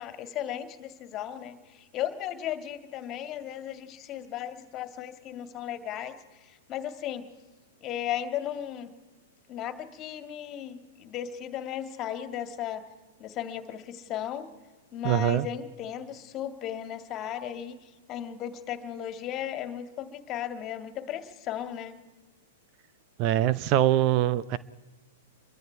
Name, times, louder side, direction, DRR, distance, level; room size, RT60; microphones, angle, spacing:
voice 1, 0.0-7.3 7.8-8.9 9.5-12.9 13.2-14.5 14.9-22.0, left 10 dB, 30° left, 9 dB, 2.2 m, -36 dB
voice 2, 15.0-15.5 23.2-24.6, right 13 dB, 40° right, 16 dB, 0.7 m, -23 dB
28.0 x 23.0 x 4.8 m, 1.2 s
figure-of-eight pair, 105°, 0 cm